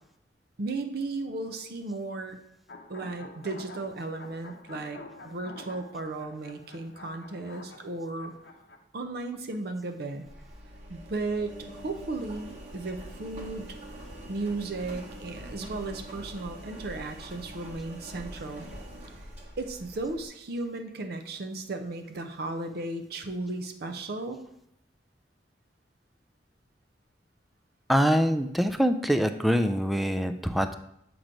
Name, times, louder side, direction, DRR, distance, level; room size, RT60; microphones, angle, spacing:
voice 1, 0.6-2.4 2.9-8.3 8.9-10.3 10.9-13.7 14.3-18.7 19.6-24.4, right 2 dB, 60° right, 6 dB, 0.6 m, -35 dB
sound 1, 2.7-8.8, left 2 dB, 70° left, 0.8 m, -48 dB
Engine, 10.3-20.3, right 1 dB, 40° right, 1.4 m, -44 dB
voice 2, 27.9-30.7, equal, ahead, 8 dB, 0.3 m, -24 dB
7.4 x 3.0 x 5.1 m, 0.75 s
head